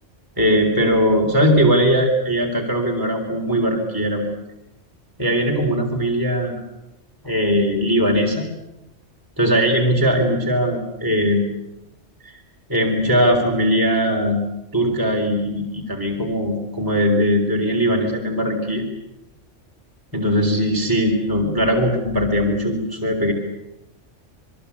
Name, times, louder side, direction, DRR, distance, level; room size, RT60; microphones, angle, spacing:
voice 1, 0.4-4.2 5.2-6.6 7.2-8.5 9.4-11.5 12.2-12.4 12.7-14.4 14.7-18.9 20.1-23.3, equal, 15° right, 0 dB, 3.7 m, -20 dB
27.5 x 22.0 x 8.4 m, 0.92 s
omnidirectional pair, 1.3 m